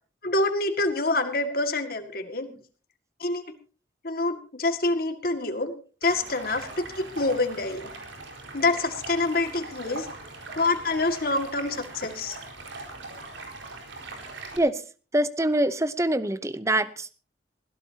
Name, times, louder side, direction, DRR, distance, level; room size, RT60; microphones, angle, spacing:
voice 1, 0.2-2.5 3.2-3.4 4.0-5.7 6.0-7.9 8.5-10.1 10.6-12.4, left 2 dB, 50° left, 7 dB, 2.0 m, -26 dB
Stream, 6.0-14.6, right 3 dB, 85° right, 4.7 m, -41 dB
voice 2, 15.1-17.1, right 1 dB, 15° right, 14 dB, 0.8 m, -24 dB
20.5 x 16.5 x 2.8 m, 0.36 s
head